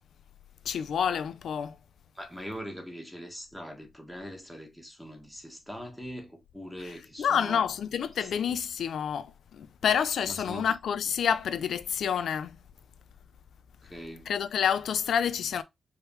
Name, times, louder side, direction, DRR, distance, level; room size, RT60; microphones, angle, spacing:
voice 1, 0.7-1.8 7.2-12.6 14.3-15.6, left 8 dB, 85° left, 0.5 m, -28 dB
voice 2, 2.1-7.6 8.2-8.3 10.2-10.7 13.8-14.3, equal, ahead, 1.4 m, -42 dB
4.9 x 3.3 x 3.1 m
wide cardioid pair, 130°, 0 cm